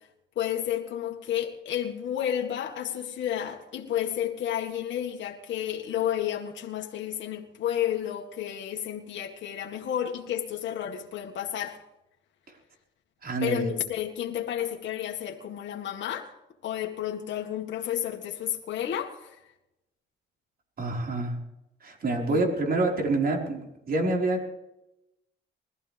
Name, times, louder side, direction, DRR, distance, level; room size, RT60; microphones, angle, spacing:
voice 1, 0.4-11.8 13.4-16.3 16.6-19.4 22.3-22.4, left 10 dB, 70° left, 1 dB, 2.0 m, -31 dB
voice 2, 13.2-13.7 20.8-21.4 21.8-24.5, right 2 dB, 50° right, 0 dB, 5.0 m, -27 dB
21.5 x 15.0 x 3.6 m, 0.89 s
cardioid pair, 90°, 20 cm